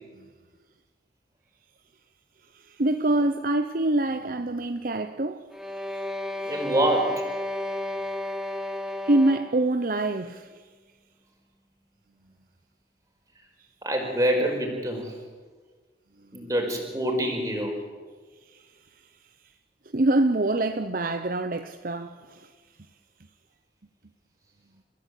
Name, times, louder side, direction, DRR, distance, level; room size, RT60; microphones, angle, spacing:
voice 1, 2.5-5.5 9.0-10.6 16.3-16.4 18.5-18.6 19.9-22.5, right 2 dB, 50° right, 0.9 m, -25 dB
sound 1, 5.5-9.7, left 1 dB, 5° right, 1.6 m, -32 dB
voice 2, 6.4-7.2 13.8-15.1 16.3-17.7, right 1 dB, 20° right, 5.2 m, -26 dB
30.0 x 15.5 x 8.5 m
head